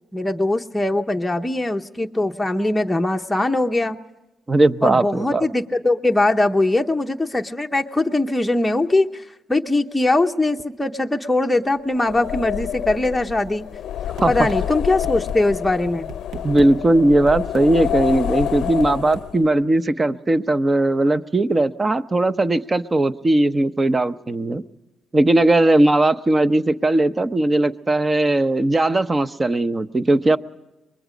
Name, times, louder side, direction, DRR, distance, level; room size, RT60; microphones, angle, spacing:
voice 1, 0.1-4.0 4.8-9.2 9.5-13.7 14.3-16.1, left 2 dB, 10° left, 3 dB, 0.8 m, -21 dB
voice 2, 4.5-5.5 14.2-14.5 16.4-24.6 25.1-30.4, right 2 dB, 25° right, 13 dB, 0.7 m, -18 dB
sound 1, 11.9-19.5, left 10 dB, 75° left, 0.6 m, -28 dB
sound 2, 14.2-14.6 15.0-15.4 15.9-16.7 17.3-17.7 18.5-19.3, right 4 dB, 75° right, 1.2 m, -37 dB
24.0 x 21.0 x 5.1 m, 1.0 s
cardioid pair, 90°, 0 cm